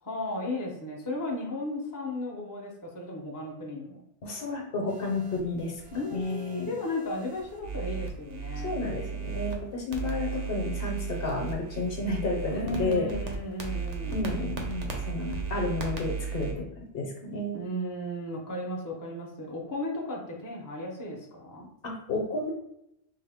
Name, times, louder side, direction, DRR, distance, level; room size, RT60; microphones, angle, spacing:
voice 1, 0.0-4.0 5.9-8.8 12.5-14.4 17.5-21.7, left 1 dB, 25° left, -1 dB, 0.5 m, -35 dB
voice 2, 4.2-5.8 6.1-6.8 8.6-13.1 14.1-16.7 16.9-17.6 21.8-22.5, left 3 dB, 60° left, 0 dB, 0.9 m, -31 dB
sound 1, 4.9-9.6 9.9-16.5, right 6 dB, 50° right, 0.6 m, -36 dB
3.7 x 2.1 x 3.4 m, 0.81 s
omnidirectional pair, 1.2 m